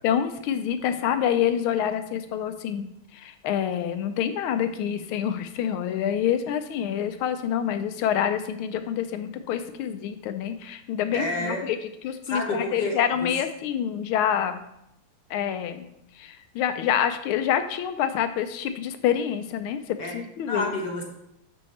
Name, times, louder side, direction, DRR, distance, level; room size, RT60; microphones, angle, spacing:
voice 1, 0.0-11.8 12.0-14.6 15.3-15.9 16.2-20.7, left 9 dB, 80° left, 9 dB, 1.5 m, -27 dB
voice 2, 11.1-11.7 12.2-13.3 20.0-20.2 20.4-21.0, left 2 dB, 55° left, 0 dB, 1.6 m, -29 dB
6.4 x 5.4 x 4.2 m, 0.80 s
omnidirectional pair, 2.3 m